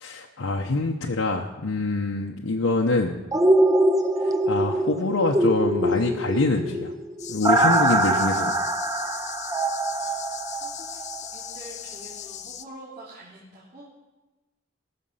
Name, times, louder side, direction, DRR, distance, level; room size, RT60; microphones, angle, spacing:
voice 1, 0.0-3.2 4.2-6.9 7.3-8.5, left 2 dB, 80° left, 0 dB, 0.9 m, -25 dB
sound 1, 3.3-11.2 11.5-11.6, right 1 dB, 15° right, 0.6 m, -23 dB
sound 2, 7.2-12.6, left 10 dB, 35° left, 0.5 m, -38 dB
voice 2, 10.5-11.0 11.3-13.9, right 1 dB, 45° right, -10 dB, 3.1 m, -45 dB
19.0 x 6.6 x 5.7 m, 1.1 s
head